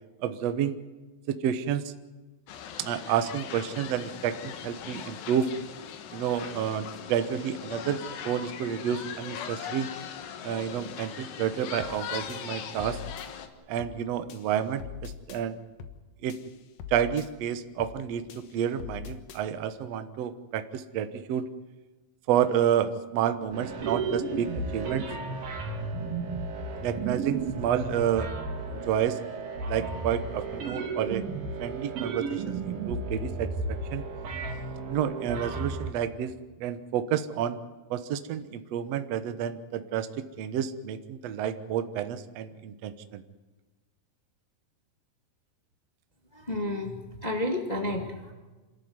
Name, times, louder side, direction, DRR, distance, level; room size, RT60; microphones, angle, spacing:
voice 1, 0.2-0.8 1.3-1.9 2.8-5.5 6.1-8.0 8.2-9.9 10.4-13.0 13.7-15.6 16.2-16.4 16.9-21.4 22.3-25.0 26.8-28.3 28.7-29.2 29.7-31.2 31.6-34.0 34.9-36.3 36.6-37.6 37.9-40.1 40.4-43.2, right 9 dB, 85° right, 10 dB, 1.4 m, -30 dB
sound 1, 2.5-13.5, left 8 dB, 85° left, 3.7 m, -40 dB
sound 2, 11.8-12.0 12.3-13.3 13.8-14.0 14.3-15.4 15.8-16.0 16.3-17.3 17.8-18.0 18.3-19.4, left 8 dB, 65° left, 2.7 m, -43 dB
sound 3, 23.5-35.9, right 3 dB, 65° right, 4.6 m, -33 dB
voice 2, 46.3-48.3, left 1 dB, 35° left, 2 dB, 0.6 m, -31 dB
27.0 x 14.0 x 9.6 m, 1.2 s
omnidirectional pair, 4.7 m